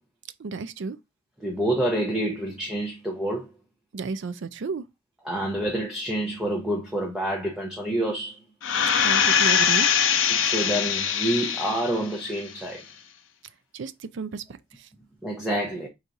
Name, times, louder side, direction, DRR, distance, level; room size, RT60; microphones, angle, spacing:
voice 1, 0.4-1.0 3.9-4.8 9.0-9.9 13.7-14.4 14.7-14.9, right 4 dB, 55° right, 0.4 m, -32 dB
voice 2, 1.4-3.5 5.2-8.4 10.3-12.8 15.2-15.9, right 1 dB, 5° right, 0.7 m, -28 dB
sound 1, 8.6-12.0 12.5-12.6, left 7 dB, 65° left, 0.7 m, -22 dB
3.9 x 2.7 x 4.6 m
head